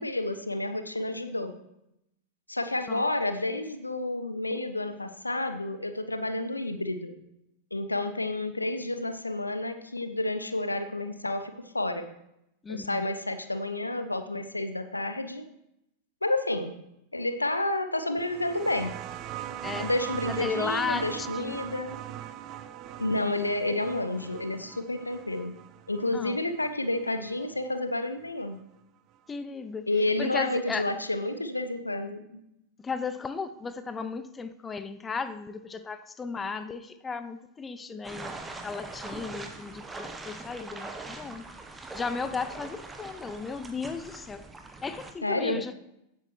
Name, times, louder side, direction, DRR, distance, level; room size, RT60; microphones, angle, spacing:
voice 1, 0.0-1.5 2.5-7.2 7.7-12.1 12.7-15.4 16.2-16.8 17.1-18.9 19.8-22.0 23.0-25.5 25.9-28.6 29.9-32.4 45.2-45.6, left 2 dB, 85° left, 0.8 m, -30 dB
voice 2, 12.6-13.1 19.6-19.9 20.3-21.6 26.1-26.4 29.3-29.9 30.2-30.8 32.8-38.3 38.6-41.5 41.9-44.4 44.8-45.8, left 4 dB, 15° left, 0.5 m, -35 dB
sound 1, 18.2-27.4 28.6-28.7, right 11 dB, 35° right, 0.5 m, -40 dB
sound 2, 38.0-45.1, right 3 dB, 10° right, 1.0 m, -42 dB
16.0 x 8.1 x 3.1 m
figure-of-eight pair, 90°, 0 cm